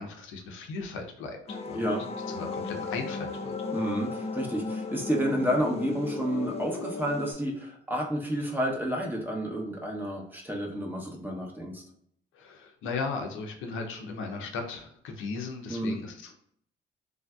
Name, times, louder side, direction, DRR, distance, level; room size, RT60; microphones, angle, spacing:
voice 1, 0.0-1.9 2.3-3.5 12.3-16.4, left 4 dB, 85° left, 3 dB, 0.6 m, -37 dB
sound 1, 1.5-7.3, left 4 dB, 30° left, 0.4 m, -35 dB
voice 2, 3.7-11.8 15.7-16.0, equal, 10° right, -1 dB, 0.7 m, -30 dB
3.2 x 2.6 x 2.3 m, 0.65 s
cardioid pair, 90°, 20 cm